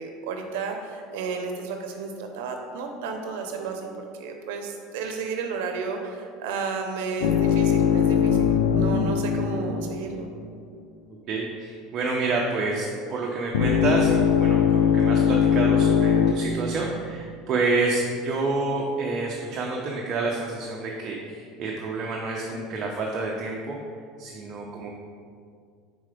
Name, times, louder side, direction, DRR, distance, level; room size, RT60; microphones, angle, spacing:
voice 1, 0.0-10.3, right 4 dB, 80° right, 4 dB, 0.6 m, -32 dB
sound 1, 7.2-10.6 13.5-16.3, left 8 dB, 90° left, 0.4 m, -21 dB
voice 2, 11.3-23.8 24.2-24.9, right 3 dB, 35° right, -1 dB, 0.6 m, -28 dB
4.7 x 4.1 x 4.9 m, 2.2 s
supercardioid pair, 145°, 0 cm